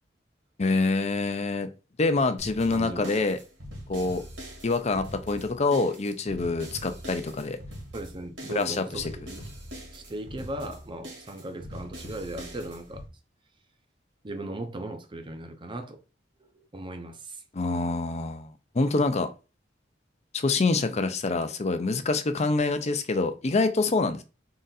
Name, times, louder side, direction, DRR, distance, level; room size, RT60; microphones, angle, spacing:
voice 1, 0.6-1.7 2.0-3.4 3.9-4.2 4.6-7.6 8.6-9.1 17.5-19.3 20.3-24.2, left 3 dB, 35° left, 0.6 m, -26 dB
sound 1, 2.4-13.1, equal, 70° right, 1.9 m, -43 dB
voice 2, 2.7-3.3 7.9-9.4 9.9-13.0 14.2-16.0 16.5-17.4 17.7-17.8, right 1 dB, 25° right, 0.6 m, -37 dB
3.9 x 2.5 x 4.0 m
head